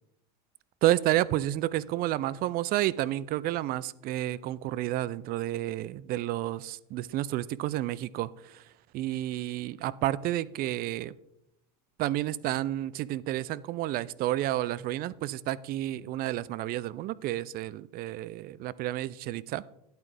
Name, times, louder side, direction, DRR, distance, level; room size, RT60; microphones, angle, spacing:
voice 1, 0.8-11.1 12.0-19.6, right 14 dB, 50° right, 21 dB, 0.4 m, -30 dB
10.5 x 8.7 x 3.4 m, 0.85 s
supercardioid pair, 95°, 20 cm